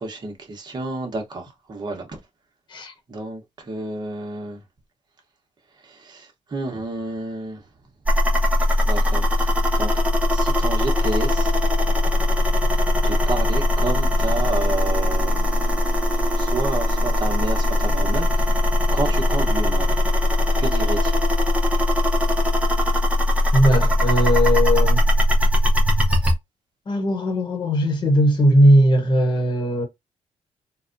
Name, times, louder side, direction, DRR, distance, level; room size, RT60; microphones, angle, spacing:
voice 1, 0.0-2.2 3.1-4.6 5.8-7.7 8.8-10.0 10.3-11.5 13.0-16.0 16.3-18.6 18.9-19.9 20.6-21.2, right 3 dB, 35° right, 1.2 m, -30 dB
sound 1, 8.0-26.3, left 1 dB, 10° right, 0.8 m, -20 dB
voice 2, 23.5-25.0 26.9-29.8, equal, 40° left, 1.1 m, -18 dB
3.9 x 2.3 x 2.6 m
cardioid pair, 140°, 12 cm